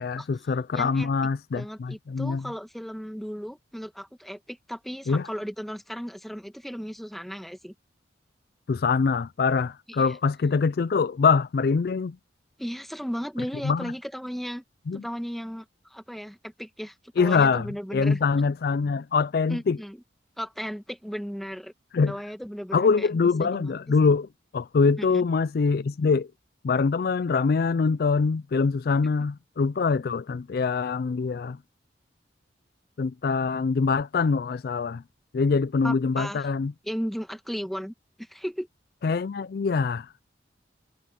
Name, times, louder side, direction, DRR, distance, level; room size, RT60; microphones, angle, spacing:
voice 1, 0.0-2.5 5.1-5.3 8.7-12.2 13.6-13.9 14.9-15.0 17.2-17.7 17.9-19.8 21.9-22.1 22.7-24.3 24.5-26.3 26.6-31.6 33.0-35.0 35.3-36.7 39.0-40.1, left 4 dB, 55° left, 0.4 m, -24 dB
voice 2, 0.7-1.1 1.5-7.7 9.9-10.2 12.6-14.6 14.9-15.6 15.9-18.2 19.5-20.0 20.4-21.7 22.1-23.7 25.0-25.2 35.8-36.5 36.8-38.7, equal, ahead, 1.4 m, -35 dB
head